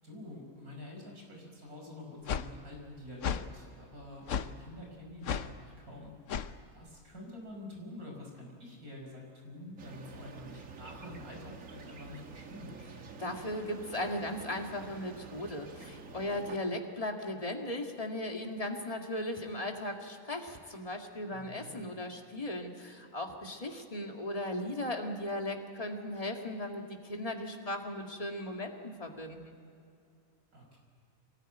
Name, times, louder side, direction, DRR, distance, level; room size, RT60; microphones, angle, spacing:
voice 1, 0.0-6.5 6.7-12.8 21.3-21.8 30.5-30.8, left 1 dB, 90° right, 0 dB, 6.0 m, -47 dB
sound 1, 2.3-2.5 3.2-3.5 4.3-4.5 5.2-5.5 6.3-6.5, left 7 dB, 60° left, 1.1 m, -33 dB
sound 2, 9.8-16.6, right 5 dB, 65° right, 1.6 m, -48 dB
voice 2, 13.2-29.5, left 1 dB, 25° left, 2 dB, 2.1 m, -37 dB
24.0 x 19.0 x 9.1 m, 2.6 s
omnidirectional pair, 1.5 m